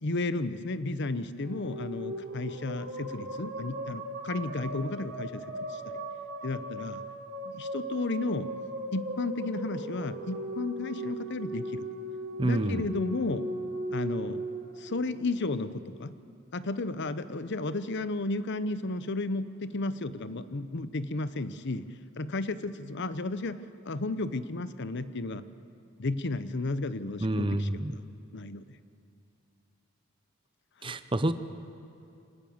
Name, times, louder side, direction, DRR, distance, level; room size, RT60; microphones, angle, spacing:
voice 1, 0.0-6.0 6.4-7.0 7.4-8.5 8.9-11.9 12.4-13.5 13.9-14.4 14.8-16.2 16.5-21.9 22.2-25.4 26.0-28.0 28.3-28.6 30.8-31.0, left 2 dB, 55° left, 13 dB, 0.8 m, -33 dB
sound 1, 1.3-15.7, right 1 dB, 65° right, 3.0 m, -38 dB
voice 2, 12.4-12.8 27.2-27.9 30.8-31.3, right 1 dB, 25° right, 11 dB, 0.8 m, -28 dB
25.5 x 18.5 x 7.2 m, 2.7 s
head